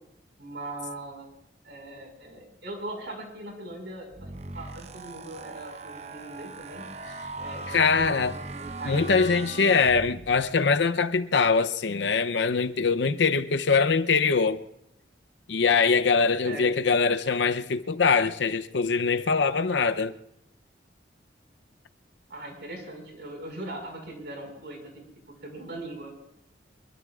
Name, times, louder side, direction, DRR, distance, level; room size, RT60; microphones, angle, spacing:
voice 1, 0.4-1.3 1.6-6.9 7.4-8.2 8.5-9.3 9.5-9.8 16.4-16.7 22.3-26.1, right 2 dB, 70° right, 5.1 m, -40 dB
sound 1, 4.1-10.6, right 3 dB, 40° right, 0.8 m, -39 dB
voice 2, 7.7-8.4 8.9-14.6 15.5-20.1, left 5 dB, 80° left, 0.7 m, -23 dB
24.0 x 22.0 x 2.4 m
head